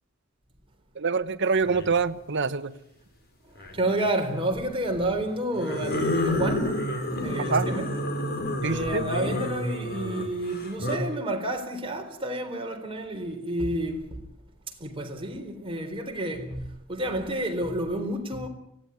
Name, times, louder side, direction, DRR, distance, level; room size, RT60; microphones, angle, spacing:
voice 1, 1.0-2.7 7.4-7.8 8.6-9.1, right 4 dB, 60° right, 1.1 m, -26 dB
sound 1, 1.6-2.0 3.5-4.1 5.5-11.0, left 1 dB, 50° left, 5.4 m, -29 dB
voice 2, 3.7-6.7 7.2-7.9 8.6-14.0 14.8-16.6 16.9-18.5, right 1 dB, 25° right, 4.1 m, -30 dB
24.5 x 17.5 x 9.4 m
head